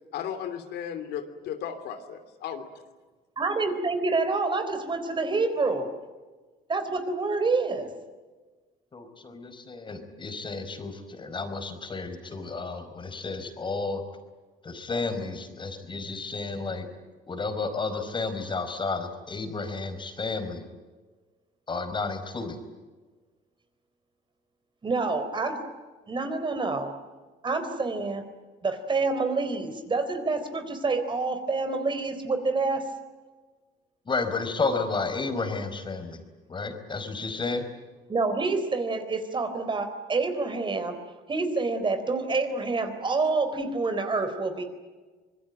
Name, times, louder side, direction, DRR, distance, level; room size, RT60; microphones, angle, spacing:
voice 1, 0.1-2.6, left 9 dB, 75° left, 8 dB, 3.0 m, -35 dB
voice 2, 3.4-5.9 6.7-7.9 24.8-25.6 26.1-26.9 27.4-28.2 28.6-32.9 38.1-41.0 41.3-44.6, right 3 dB, 30° right, 8 dB, 3.9 m, -27 dB
voice 3, 8.9-14.0 14.6-16.9 17.3-20.7 21.7-22.6 34.1-36.2 36.5-37.7, left 3 dB, 30° left, 8 dB, 4.6 m, -32 dB
26.0 x 21.0 x 9.3 m, 1.3 s
cardioid pair, 110°, 17 cm